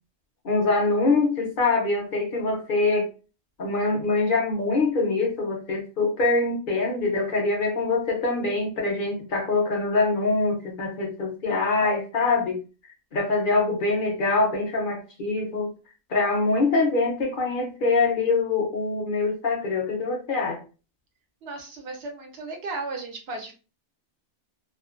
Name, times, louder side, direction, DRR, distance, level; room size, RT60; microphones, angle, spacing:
voice 1, 0.4-3.1 3.6-12.6 13.1-15.7 16.1-20.6, left 3 dB, 55° left, 1 dB, 0.6 m, -24 dB
voice 2, 21.4-23.5, right 3 dB, 70° right, 4 dB, 0.8 m, -35 dB
2.4 x 2.2 x 2.3 m, 0.34 s
omnidirectional pair, 1.2 m